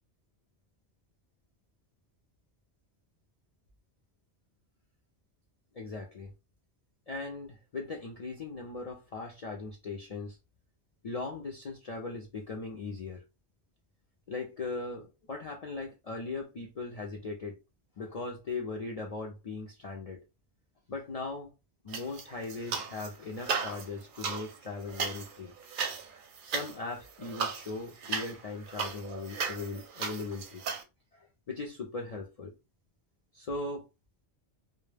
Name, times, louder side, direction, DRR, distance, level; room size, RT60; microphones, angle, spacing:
voice 1, 5.7-6.3 7.1-10.4 11.0-13.2 14.3-17.6 18.0-20.2 20.9-21.5 21.8-25.5 26.4-30.6 31.1-32.5 33.3-33.9, left 3 dB, 65° left, 0.3 m, -39 dB
sound 1, 21.9-23.1 23.4-30.8, right 5 dB, 60° right, 0.6 m, -36 dB
2.1 x 2.1 x 3.2 m
omnidirectional pair, 1.2 m